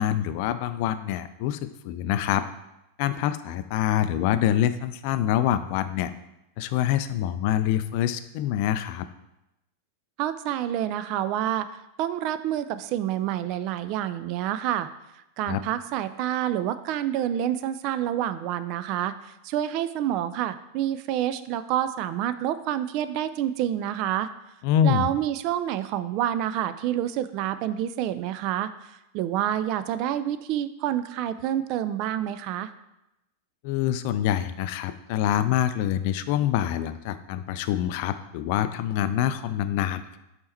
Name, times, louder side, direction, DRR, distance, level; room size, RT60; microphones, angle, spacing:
voice 1, 0.0-2.5 3.0-6.1 6.6-9.1 15.5-15.6 24.6-25.1 33.6-40.2, left 11 dB, 45° left, 12 dB, 0.3 m, -25 dB
voice 2, 10.2-11.7 12.0-14.9 15.4-24.3 24.8-28.7 29.1-32.7, right 11 dB, 40° right, 12 dB, 0.3 m, -28 dB
5.4 x 4.3 x 4.2 m, 0.89 s
figure-of-eight pair, 90°, 0 cm